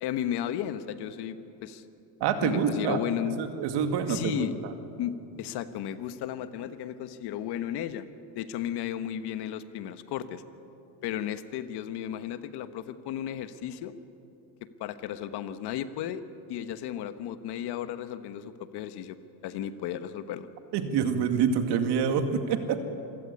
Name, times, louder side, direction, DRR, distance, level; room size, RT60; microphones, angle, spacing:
voice 1, 0.0-1.8 2.4-3.4 4.1-4.6 5.0-8.1 8.3-10.4 11.0-13.9 14.8-16.2 16.5-19.2 19.4-20.5, left 10 dB, 60° left, 11 dB, 1.3 m, -34 dB
voice 2, 2.2-3.0 3.4-4.7 20.7-22.8, right 7 dB, 60° right, 7 dB, 2.3 m, -27 dB
27.0 x 16.0 x 9.7 m, 2.8 s
cardioid pair, 120°, 45 cm